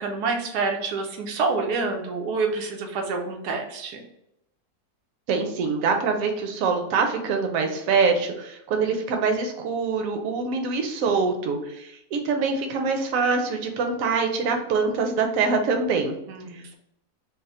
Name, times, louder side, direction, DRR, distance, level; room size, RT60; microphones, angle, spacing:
voice 1, 0.0-4.0 16.3-16.8, right 4 dB, 90° right, 2 dB, 1.2 m, -27 dB
voice 2, 5.3-16.1 16.5-16.6, right 4 dB, 65° right, 4 dB, 0.9 m, -24 dB
3.4 x 2.0 x 4.1 m, 0.83 s
omnidirectional pair, 1.7 m